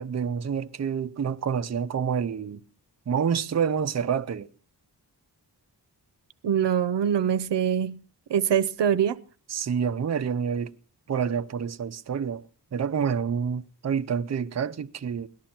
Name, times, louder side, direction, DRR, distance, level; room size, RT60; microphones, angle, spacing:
voice 1, 0.0-2.6 3.1-4.5 9.5-10.7 11.1-12.4 12.7-15.3, right 7 dB, 40° right, 0.6 m, -28 dB
voice 2, 6.4-8.0 8.3-9.2, right 8 dB, 85° right, 0.7 m, -23 dB
18.0 x 12.0 x 4.4 m
wide cardioid pair, 130°, 41 cm